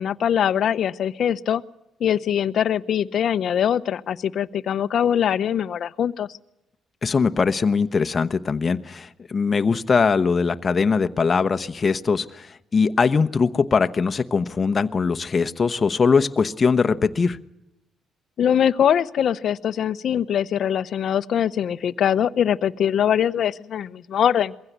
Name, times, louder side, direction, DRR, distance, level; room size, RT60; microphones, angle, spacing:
voice 1, 0.0-1.6 2.0-6.3 18.4-24.5, left 9 dB, 65° left, 14 dB, 0.8 m, -22 dB
voice 2, 7.0-17.4, left 5 dB, 35° left, 10 dB, 1.0 m, -21 dB
22.5 x 16.0 x 9.4 m, 0.89 s
cardioid pair, 90°, 0 cm